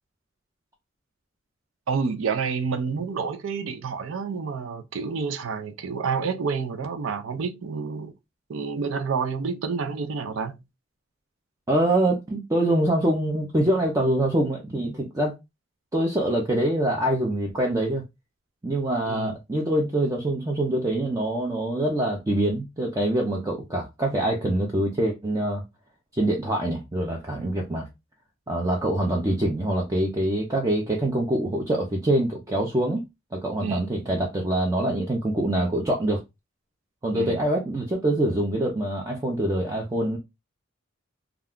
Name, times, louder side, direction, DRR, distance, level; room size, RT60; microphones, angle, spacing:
voice 1, 1.9-8.1 8.5-10.6 19.1-19.4 33.6-33.8 37.2-37.4, right 5 dB, 75° right, 0.5 m, -29 dB
voice 2, 11.7-15.4 15.9-18.0 18.6-25.6 26.1-27.9 28.5-33.0 33.3-36.2 37.0-40.2, right 1 dB, 15° right, 0.5 m, -25 dB
2.4 x 2.2 x 3.5 m
head